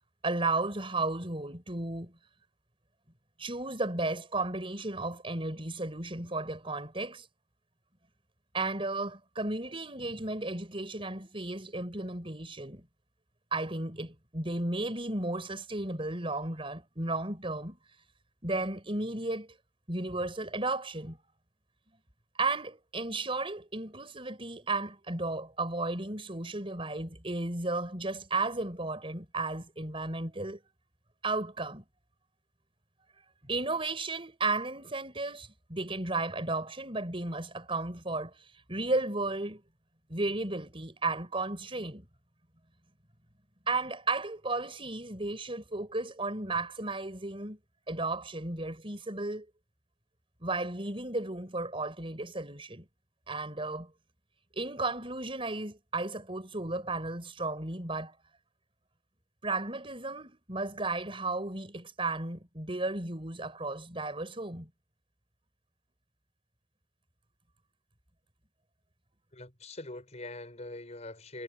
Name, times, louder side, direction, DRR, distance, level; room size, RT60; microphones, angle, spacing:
voice 1, 0.2-2.1 3.4-7.3 8.5-12.8 13.5-17.8 18.4-19.5 19.9-21.2 22.4-30.6 31.2-31.8 33.4-38.3 38.7-39.6 40.1-42.1 43.7-47.6 47.9-49.5 50.4-52.9 53.3-53.9 54.5-58.1 59.4-64.7, right 2 dB, 30° right, 5.3 m, -34 dB
voice 2, 69.3-71.4, left 2 dB, 35° left, 6.1 m, -43 dB
head